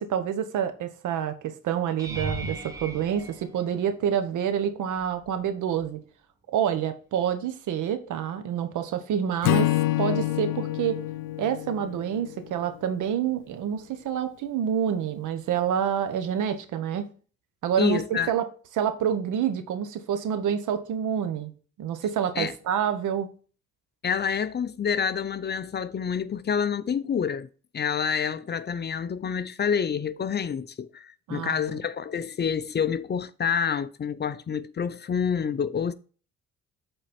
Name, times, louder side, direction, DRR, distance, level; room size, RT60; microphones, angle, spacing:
voice 1, 0.0-6.0 6.5-11.0 11.4-17.1 17.6-18.5 18.7-21.5 21.8-23.3 31.3-31.5, right 8 dB, 80° right, 1.2 m, -27 dB
sound 1, 2.0-4.3 5.0-5.4 5.8-5.9 10.3-10.4, right 2 dB, 10° right, 1.8 m, -37 dB
Acoustic guitar / Strum, 9.4-12.8, left 16 dB, 85° left, 0.6 m, -27 dB
voice 2, 17.8-18.4 22.4-22.5 24.0-27.5 27.7-35.9, left 7 dB, 35° left, 0.6 m, -28 dB
7.9 x 4.3 x 4.3 m
cardioid pair, 90°, 30 cm